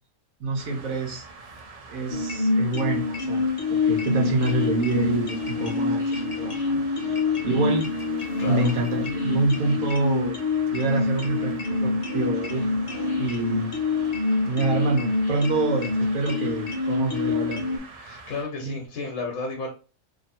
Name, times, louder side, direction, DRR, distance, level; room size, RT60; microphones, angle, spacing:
voice 1, 0.4-1.2 1.9-3.5 3.8-7.9 8.4-10.4 10.7-12.7 13.2-13.8 14.5-17.6 18.6-18.7, right 2 dB, 75° right, 1 dB, 1.3 m, -27 dB
sound 1, 0.6-18.4, right 3 dB, 50° right, 0.4 m, -44 dB
sound 2, 1.4-1.7 3.2-10.0 10.4-10.5 10.7-11.0 11.4-18.9, left 1 dB, 20° left, 1.1 m, -50 dB
sound 3, 2.1-17.8, left 3 dB, 40° left, 0.6 m, -26 dB
voice 2, 8.4-8.7 18.0-19.7, left 3 dB, 80° left, 1 dB, 1.3 m, -32 dB
3.0 x 2.7 x 4.1 m, 0.34 s
omnidirectional pair, 1.5 m